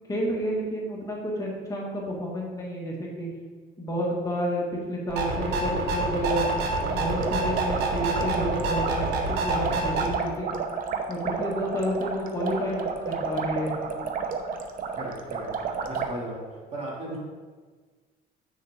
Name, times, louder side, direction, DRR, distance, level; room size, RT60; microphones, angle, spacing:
voice 1, 0.1-3.3 3.8-6.5 6.9-10.6 11.1-13.7, equal, 20° left, -4 dB, 1.8 m, -30 dB
sound 1, 5.1-10.1, right 2 dB, 80° right, 1.5 m, -27 dB
sound 2, 6.2-16.1, right 5 dB, 55° right, 0.8 m, -32 dB
voice 2, 15.0-15.5 15.8-16.4 16.7-17.2, right 1 dB, 40° right, -3 dB, 2.3 m, -35 dB
7.7 x 6.5 x 3.6 m, 1.4 s
cardioid pair, 110°, 17 cm